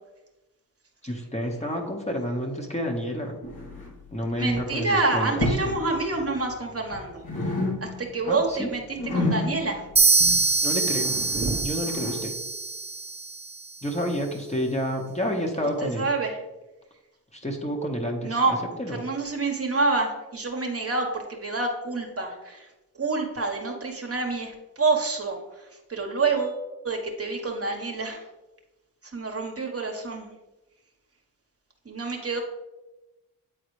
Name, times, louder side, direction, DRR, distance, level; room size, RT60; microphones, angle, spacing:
voice 1, 1.0-3.4 4.1-5.6 8.2-8.7 10.6-11.1 11.6-12.3 13.8-16.1 17.3-18.4 18.8-19.0, equal, 15° left, 1 dB, 1.4 m, -29 dB
sound 1, 3.4-4.1 4.4-4.7 5.3-5.9 6.1-7.0 7.2-8.2 8.5-12.2, left 2 dB, 65° left, 2.3 m, -30 dB
voice 2, 4.4-7.2 8.0-8.8 9.1-9.8 11.3-11.6 15.8-16.4 18.2-18.6 18.9-22.6 23.0-25.4 25.9-26.6 26.8-28.2 29.1-30.3 31.9-32.4, right 3 dB, 35° right, 2 dB, 1.3 m, -27 dB
sound 2, 10.0-13.7, right 4 dB, 15° right, 0.6 m, -24 dB
9.0 x 3.9 x 3.2 m, 1.1 s
supercardioid pair, 45°, 39 cm